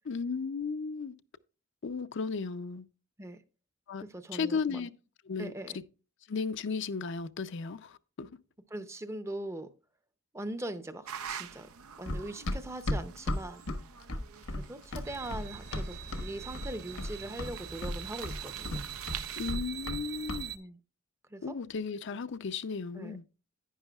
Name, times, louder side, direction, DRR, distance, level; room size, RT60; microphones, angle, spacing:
voice 1, 0.1-1.1 1.8-2.9 3.9-4.0 4.3-4.9 5.3-5.8 6.3-8.3 19.4-20.5 21.4-23.2, left 5 dB, 55° left, 0.5 m, -35 dB
voice 2, 4.0-4.8 5.4-5.8 8.7-9.7 10.3-11.7 12.0-13.6 14.5-18.8 20.5-20.8 21.3-21.6 22.9-23.2, right 1 dB, 15° right, 0.6 m, -41 dB
sound 1, 11.1-19.5, right 8 dB, 90° right, 0.6 m, -46 dB
Run, 12.1-16.3 16.6-17.1 17.4-20.0 20.3-20.5, left 1 dB, 80° left, 1.2 m, -35 dB
sound 2, 15.1-20.6, right 8 dB, 50° right, 0.8 m, -43 dB
11.0 x 9.7 x 2.3 m
head